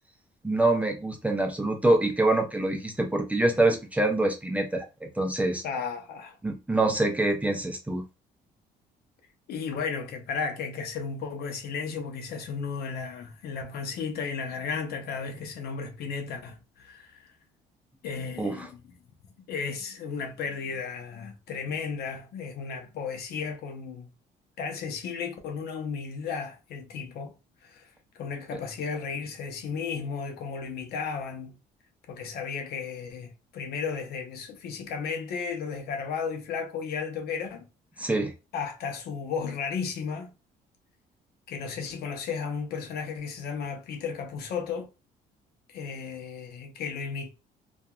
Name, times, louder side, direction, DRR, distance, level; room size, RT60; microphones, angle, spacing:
voice 1, 0.4-5.6 6.4-8.0 18.4-18.7 38.0-38.3, right 2 dB, 10° right, 0.6 m, -25 dB
voice 2, 5.6-6.4 9.5-17.3 18.0-18.8 19.5-24.1 24.6-27.3 27.6-27.9 28.2-31.6 32.1-37.7 38.5-40.3 41.5-44.9 45.7-47.3, left 5 dB, 70° left, 0.7 m, -34 dB
2.7 x 2.5 x 2.3 m
cardioid pair, 110°, 17 cm